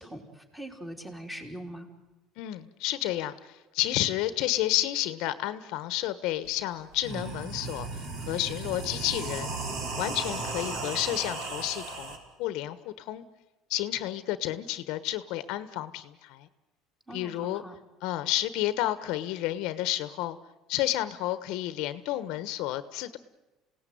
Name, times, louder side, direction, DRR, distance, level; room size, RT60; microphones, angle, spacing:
voice 1, 0.0-1.9 17.1-17.8, right 1 dB, 5° right, 2 dB, 3.9 m, -42 dB
voice 2, 2.4-9.5 10.0-13.2 13.7-16.5 17.1-17.6 18.0-20.4 20.7-23.2, left 14 dB, 70° left, 13 dB, 1.2 m, -31 dB
sound 1, 6.4-6.5 6.9-12.2, right 3 dB, 60° right, 5.0 m, -35 dB
27.5 x 17.5 x 9.4 m, 1.1 s
cardioid pair, 130°, 0 cm